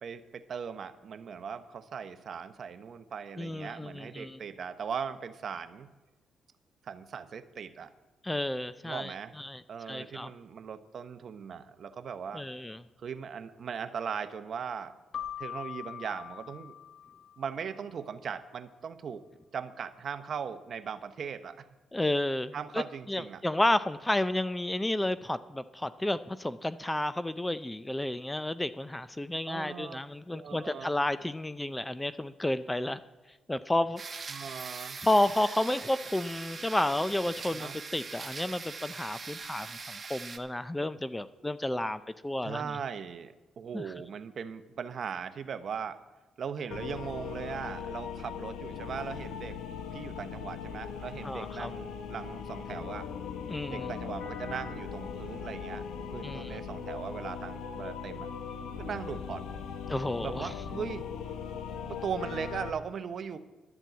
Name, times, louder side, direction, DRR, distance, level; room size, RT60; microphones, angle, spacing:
voice 1, 0.0-5.9 6.8-7.9 8.8-9.3 9.7-12.5 13.0-14.9 15.4-16.7 17.4-19.3 19.5-21.7 22.5-23.4 29.5-30.0 30.3-31.0 34.3-35.0 37.5-37.8 42.4-46.0 46.4-49.6 49.9-53.1 53.7-55.8 56.1-58.3 58.8-59.4 60.2-61.0 61.5-63.4, right 7 dB, 55° right, 11 dB, 0.8 m, -39 dB
voice 2, 3.4-4.4 8.2-9.6 9.9-10.3 12.3-12.8 21.9-33.0 33.5-34.0 35.0-42.8 43.7-43.9 51.2-51.7 53.5-53.9 56.2-56.6 59.9-60.5, left 1 dB, 10° left, 14 dB, 0.4 m, -31 dB
Keyboard (musical), 15.1-17.7, left 9 dB, 60° left, 0.7 m, -42 dB
Shaving Electric A, 34.0-40.4, right 4 dB, 35° right, 1.1 m, -42 dB
sound 1, 46.7-62.7, left 7 dB, 80° left, 1.0 m, -39 dB
12.0 x 7.4 x 8.0 m, 1.1 s
cardioid pair, 90°, 0 cm